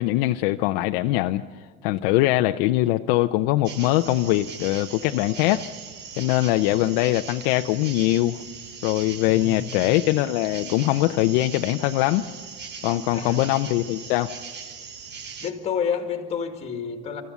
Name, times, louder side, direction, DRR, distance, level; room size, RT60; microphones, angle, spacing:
voice 1, 0.0-1.4 1.8-5.6 6.2-8.4 8.8-12.2 12.8-14.3, left 16 dB, 55° left, 7 dB, 0.6 m, -22 dB
sound 1, 3.6-15.5, right 6 dB, 30° right, 1.2 m, -39 dB
voice 2, 9.2-9.8 13.1-13.5 15.4-17.2, left 7 dB, 20° left, 6 dB, 2.0 m, -30 dB
26.0 x 14.5 x 8.3 m, 1.5 s
cardioid pair, 170°, 34 cm